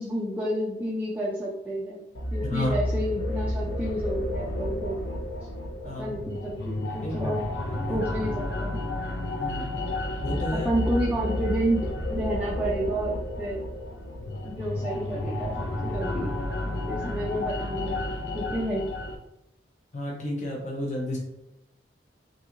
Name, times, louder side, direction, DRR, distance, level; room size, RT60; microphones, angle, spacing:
voice 1, 0.0-2.0 2.3-5.0 6.0-7.4 7.9-8.8 10.5-13.6 14.4-16.4 16.9-18.9, equal, 10° right, -5 dB, 0.4 m, -30 dB
sound 1, 2.1-19.1, left 1 dB, 70° left, 0.7 m, -31 dB
voice 2, 2.4-2.7 5.8-6.2 7.0-7.1 7.7-8.0 9.4-9.7 10.2-10.7 19.9-21.2, left 1 dB, 40° left, -2 dB, 0.8 m, -31 dB
5.8 x 2.7 x 2.5 m, 0.88 s
head